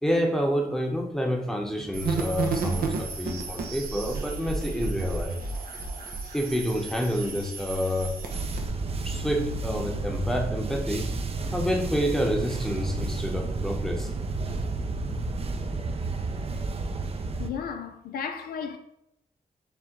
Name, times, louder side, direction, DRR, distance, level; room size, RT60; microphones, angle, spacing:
voice 1, 0.0-5.4 6.3-8.2 9.0-11.1 11.5-14.1, equal, 5° left, 0.8 m, -28 dB
sound 1, 1.9-8.7, right 4 dB, 85° right, 0.6 m, -32 dB
sound 2, 8.3-17.5, right 3 dB, 40° right, 0.5 m, -31 dB
voice 2, 17.4-18.8, left 7 dB, 90° left, 0.4 m, -34 dB
4.5 x 2.1 x 3.7 m
cardioid pair, 55°, 15 cm